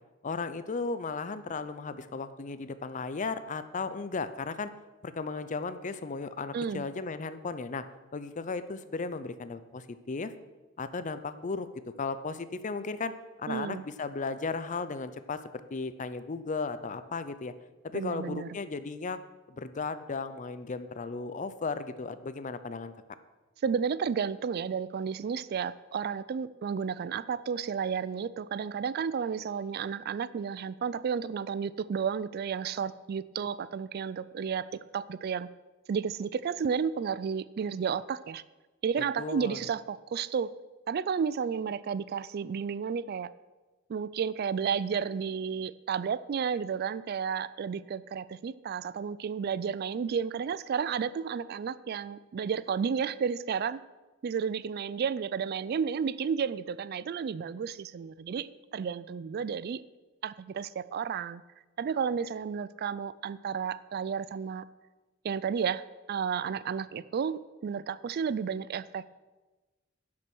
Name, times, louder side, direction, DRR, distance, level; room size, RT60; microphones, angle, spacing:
voice 1, 0.2-4.7 5.0-7.8 8.1-10.3 10.8-13.1 13.4-15.4 15.7-17.5 17.8-19.2 19.5-22.9 39.0-39.6, left 4 dB, 40° left, 12 dB, 0.5 m, -35 dB
voice 2, 6.5-6.9 13.5-13.8 17.9-18.6 23.6-35.5 35.9-38.4 38.8-40.5 40.9-43.3 43.9-53.8 54.2-59.8 60.2-61.4 61.8-64.6 65.2-69.0, right 6 dB, 50° right, 17 dB, 0.3 m, -32 dB
11.0 x 6.0 x 6.1 m, 1.2 s
head